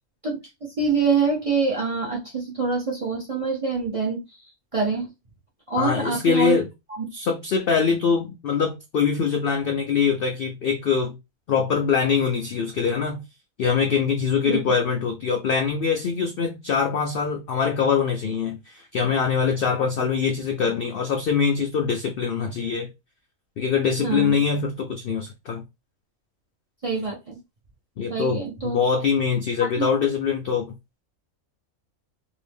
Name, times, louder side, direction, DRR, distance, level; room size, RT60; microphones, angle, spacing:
voice 1, 0.8-4.2 4.7-5.1 5.7-6.6 6.9-7.0 14.5-14.6 24.0-24.4 26.8-27.4 28.1-28.8 29.6-29.9, right 4 dB, 35° right, 0.6 m, -25 dB
voice 2, 5.8-6.7 7.1-11.2 11.5-13.2 13.6-22.9 23.6-25.6 28.0-30.7, left 6 dB, 70° left, 0.5 m, -23 dB
2.8 x 2.6 x 3.4 m
omnidirectional pair, 1.5 m